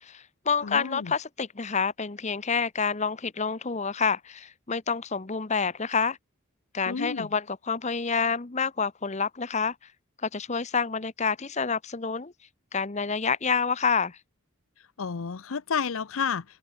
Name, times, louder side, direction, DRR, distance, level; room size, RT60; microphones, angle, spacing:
voice 1, 0.0-6.2 6.7-9.7 10.2-12.3 12.7-14.2, left 5 dB, 30° left, 0.9 m, -28 dB
voice 2, 0.6-1.1 6.9-7.3 15.0-16.4, left 6 dB, 70° left, 0.6 m, -30 dB
open air
head